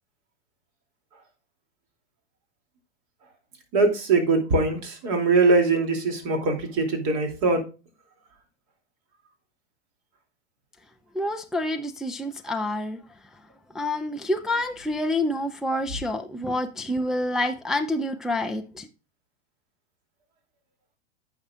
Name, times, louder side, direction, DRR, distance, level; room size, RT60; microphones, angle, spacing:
voice 1, 3.7-7.6, right 3 dB, 40° right, 2.8 m, -22 dB
voice 2, 11.1-13.0 13.7-18.9, left 1 dB, ahead, 0.4 m, -27 dB
15.0 x 5.7 x 2.4 m
figure-of-eight pair, 95°, 33 cm